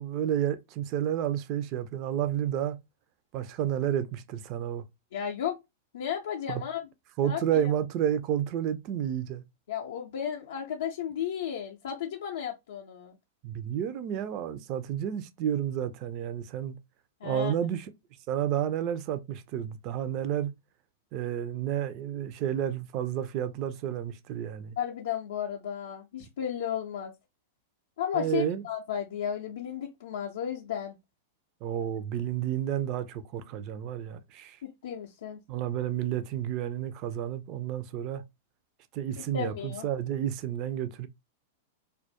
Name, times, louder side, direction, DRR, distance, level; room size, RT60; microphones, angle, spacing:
voice 1, 0.0-2.8 3.3-4.8 6.5-6.6 7.2-9.4 13.4-16.8 17.2-17.9 18.3-20.5 21.1-24.8 28.1-28.7 31.6-34.6 35.5-38.2 38.9-41.1, right 10 dB, 45° right, 0.3 m, -31 dB
voice 2, 5.1-5.6 5.9-6.8 7.2-7.4 9.7-13.2 17.2-17.5 24.8-27.1 28.0-30.9 34.6-35.4 39.2-39.9, left 9 dB, 65° left, 0.4 m, -34 dB
2.2 x 2.1 x 2.7 m
figure-of-eight pair, 100°, 0 cm